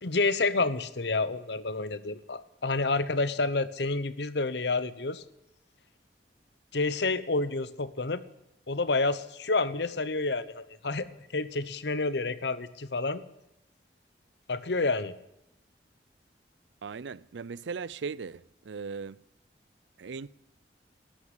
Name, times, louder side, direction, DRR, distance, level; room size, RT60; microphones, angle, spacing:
voice 1, 0.0-5.2 6.7-8.2 8.7-11.1 11.3-13.2 14.5-15.1, left 3 dB, 75° left, 1.0 m, -29 dB
voice 2, 16.8-19.2 20.0-20.3, right 5 dB, 90° right, 0.5 m, -38 dB
13.0 x 9.7 x 9.5 m
head